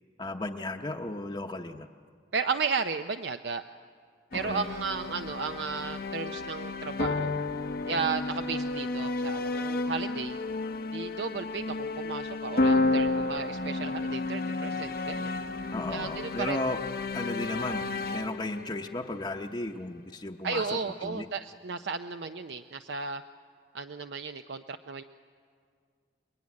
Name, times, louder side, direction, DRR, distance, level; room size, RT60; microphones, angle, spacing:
voice 1, 0.2-1.9 4.3-4.7 15.7-16.8 17.1-17.8 18.1-21.3, left 2 dB, 25° left, 2 dB, 0.8 m, -35 dB
voice 2, 2.3-3.6 4.3-7.3 7.9-10.4 10.9-15.4 15.9-16.6 20.4-23.2 23.7-25.0, right 5 dB, 75° right, 8 dB, 0.6 m, -34 dB
sound 1, 4.3-19.6, left 2 dB, 55° left, 0.8 m, -32 dB
27.5 x 22.0 x 9.6 m, 2.2 s
head